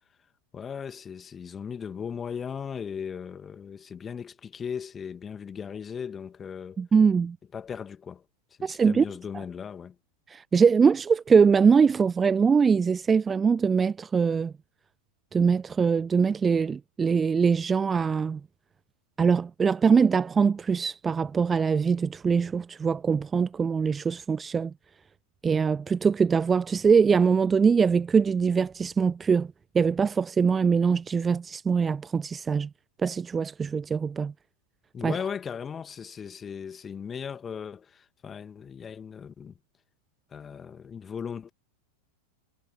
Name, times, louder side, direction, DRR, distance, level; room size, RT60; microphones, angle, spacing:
voice 1, 0.5-6.8 7.5-8.2 8.6-10.0 34.9-39.5 40.3-41.5, left 7 dB, 20° left, 2.4 m, -37 dB
voice 2, 6.8-7.4 8.6-9.0 10.3-14.5 15.3-18.4 19.2-24.7 25.4-29.5 29.7-32.7 33.0-34.3 35.0-35.1, right 6 dB, 15° right, 0.4 m, -22 dB
figure-of-eight pair, 90°, 0 cm